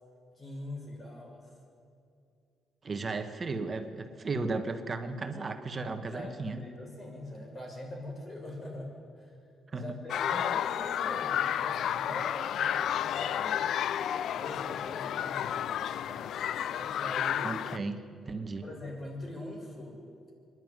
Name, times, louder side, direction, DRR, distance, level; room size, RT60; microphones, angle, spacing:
voice 1, 0.4-1.5 3.0-3.1 6.1-9.3 9.7-13.7 14.3-16.4 16.7-17.6 18.6-20.0, left 1 dB, 30° left, 0 dB, 6.3 m, -42 dB
voice 2, 2.8-6.6 9.7-10.0 10.3-10.5 17.4-18.0 18.3-18.7, right 3 dB, 35° right, 7 dB, 1.5 m, -35 dB
sound 1, 10.1-17.8, left 10 dB, 70° left, 0.4 m, -31 dB
24.5 x 11.0 x 9.7 m, 2.5 s
cardioid pair, 90°, 0 cm